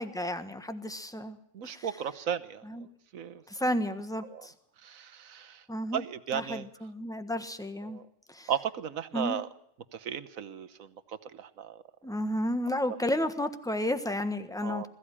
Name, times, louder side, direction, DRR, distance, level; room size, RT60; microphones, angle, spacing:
voice 1, 0.0-1.4 1.6-1.9 2.6-2.9 3.5-4.5 5.7-6.0 6.3-8.0 8.3-8.5 9.1-9.4 12.0-14.9, left 1 dB, 5° left, 9 dB, 1.3 m, -32 dB
voice 2, 1.5-3.4 4.3-4.5 4.8-5.6 5.9-6.6 7.8-8.0 8.5-9.5 9.9-11.8 14.6-14.9, right 9 dB, 80° right, 11 dB, 1.4 m, -35 dB
21.0 x 15.0 x 9.9 m, 0.75 s
omnidirectional pair, 1.4 m